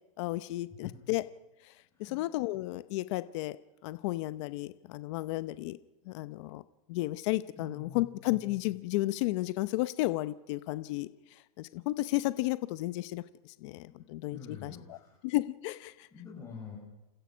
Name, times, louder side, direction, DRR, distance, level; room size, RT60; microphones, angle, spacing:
voice 1, 0.2-1.2 1.6-1.7 2.0-3.6 3.8-5.8 6.1-6.6 6.9-11.1 11.6-13.2 13.6-15.0 15.2-16.1, left 18 dB, 50° left, 13 dB, 0.8 m, -33 dB
voice 2, 7.6-8.3 13.9-14.0 14.3-15.1 16.1-16.8, left 6 dB, 15° left, -6 dB, 7.5 m, -46 dB
28.0 x 15.0 x 6.3 m, 1.0 s
supercardioid pair, 145°, 20 cm